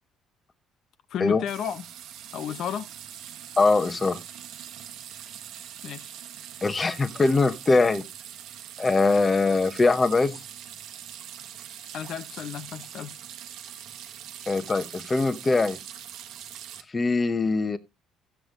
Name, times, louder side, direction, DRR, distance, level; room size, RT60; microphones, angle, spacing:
voice 1, 1.1-1.8 2.3-2.9 5.8-6.2 11.9-13.1, left 9 dB, 55° left, 0.8 m, -32 dB
sound 1, 1.5-16.8, right 10 dB, 65° right, 1.2 m, -42 dB
voice 2, 3.6-4.2 6.6-8.0 8.8-10.4 14.5-15.8 16.9-17.8, left 3 dB, 20° left, 0.9 m, -22 dB
13.5 x 8.1 x 3.7 m
cardioid pair, 140°, 0 cm